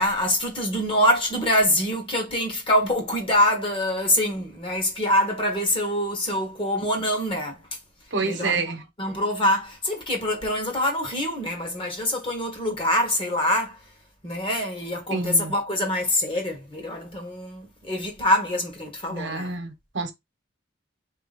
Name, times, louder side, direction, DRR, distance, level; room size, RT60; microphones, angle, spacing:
voice 1, 0.0-7.6 8.2-8.6 9.0-13.8 14.2-19.6, left 1 dB, 30° left, 1.4 m, -24 dB
voice 2, 8.1-8.8 15.1-15.5 19.1-20.1, right 4 dB, 70° right, 1.0 m, -28 dB
3.9 x 3.0 x 4.1 m
head